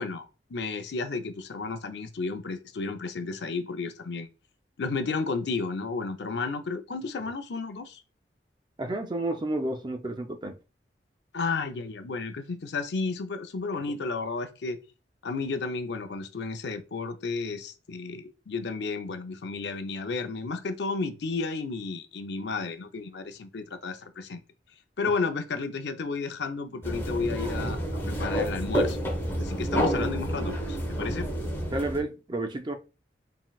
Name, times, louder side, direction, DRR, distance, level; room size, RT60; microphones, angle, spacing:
voice 1, 0.0-4.3 4.8-8.0 11.3-14.8 15.2-24.4 25.0-29.0 29.4-31.3, left 4 dB, 70° left, 0.5 m, -32 dB
voice 2, 8.8-10.6 31.7-32.8, right 2 dB, 25° right, 0.4 m, -31 dB
sound 1, 26.8-32.0, equal, 15° left, 1.0 m, -29 dB
3.9 x 3.7 x 2.3 m
head